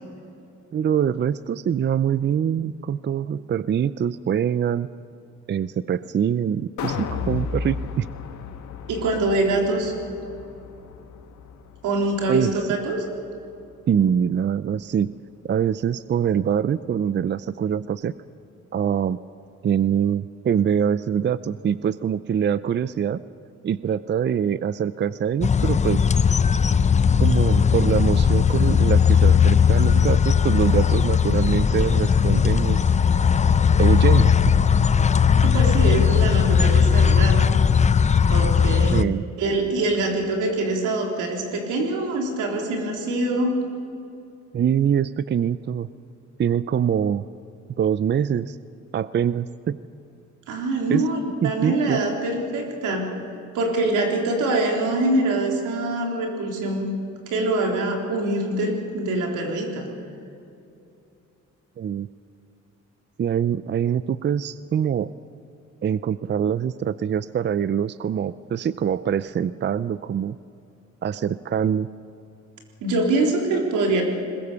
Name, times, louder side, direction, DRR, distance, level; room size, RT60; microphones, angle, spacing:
voice 1, 0.7-4.9 5.5-8.1 12.3-12.5 13.9-15.1 15.4-18.1 18.7-19.2 19.6-23.2 23.6-26.0 27.2-32.8 33.8-34.5 38.9-39.2 44.5-45.9 46.4-47.2 47.8-48.6 48.9-49.8 50.9-51.1 51.4-52.0 61.8-62.1 63.2-65.1 65.8-70.4 71.0-71.9, right 8 dB, 35° right, 16 dB, 0.5 m, -24 dB
sound 1, 6.8-13.0 13.4-13.5, left 6 dB, 70° left, 1.7 m, -34 dB
voice 2, 8.9-9.9 11.8-13.0 35.4-37.4 38.3-39.1 39.4-43.5 50.5-53.1 53.5-56.9 57.3-59.9 72.8-74.0, right 2 dB, 90° right, 1 dB, 3.9 m, -24 dB
sound 2, 25.4-39.0, left 7 dB, 25° left, 0.5 m, -18 dB
21.5 x 20.5 x 7.0 m, 2.6 s
cardioid pair, 90°, 30 cm